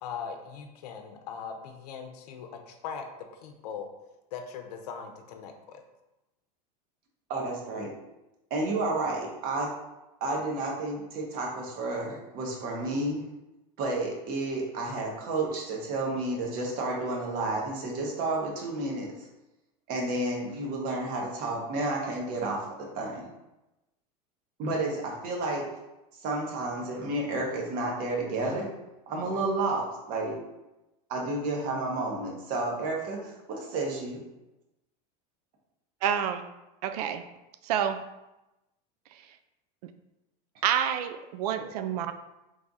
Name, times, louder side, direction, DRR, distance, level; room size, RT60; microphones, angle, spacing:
voice 1, 0.0-3.1 3.4-3.9 4.3-5.8, left 6 dB, 90° left, 5 dB, 0.7 m, -40 dB
voice 2, 7.3-7.9 8.5-9.7 10.2-13.2 13.8-19.1 19.9-23.2 24.6-25.6 26.2-28.7 29.1-30.4 31.1-34.2, right 2 dB, 45° right, -1 dB, 1.2 m, -31 dB
voice 3, 36.0-36.5 36.8-37.2 37.6-38.1 40.6-42.1, right 9 dB, 80° right, 9 dB, 0.4 m, -28 dB
3.6 x 3.3 x 4.0 m, 0.97 s
supercardioid pair, 145°, 20 cm